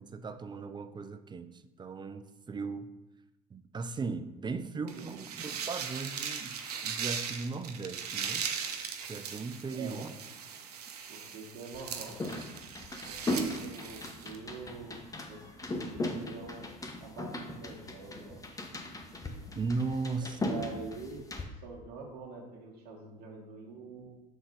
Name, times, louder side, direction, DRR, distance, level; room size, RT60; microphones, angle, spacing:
voice 1, 0.0-2.9 3.5-6.6 6.8-8.5 9.1-10.1 19.6-20.4, right 4 dB, 25° right, 11 dB, 0.5 m, -37 dB
sound 1, 4.9-14.4, right 7 dB, 90° right, 0.6 m, -39 dB
voice 2, 9.7-10.1 11.1-12.2 13.0-16.7 17.0-18.7 20.2-21.2 21.5-24.1, right 4 dB, 55° right, -1 dB, 1.4 m, -45 dB
sound 2, 11.7-21.4, left 1 dB, 20° left, 0.9 m, -38 dB
6.3 x 3.9 x 5.0 m, 1.0 s
hypercardioid pair, 70°, 19 cm